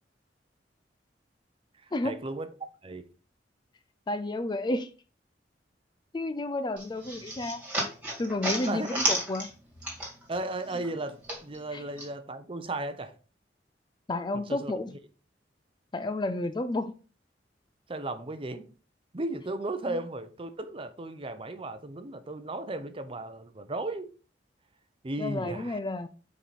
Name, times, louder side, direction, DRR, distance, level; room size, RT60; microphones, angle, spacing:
voice 1, 1.8-2.5 2.8-3.1 8.7-9.0 10.3-13.1 14.3-14.7 17.9-18.6 19.1-24.1 25.0-25.8, right 2 dB, 30° right, 0.7 m, -35 dB
voice 2, 4.1-4.9 6.1-7.6 8.2-9.5 11.7-11.8 14.1-14.9 15.9-16.9 19.9-20.0 25.2-26.1, left 2 dB, 25° left, 0.4 m, -31 dB
sound 1, 6.8-10.4 10.7-12.1, right 1 dB, 10° right, 2.1 m, -32 dB
5.7 x 4.6 x 4.2 m
head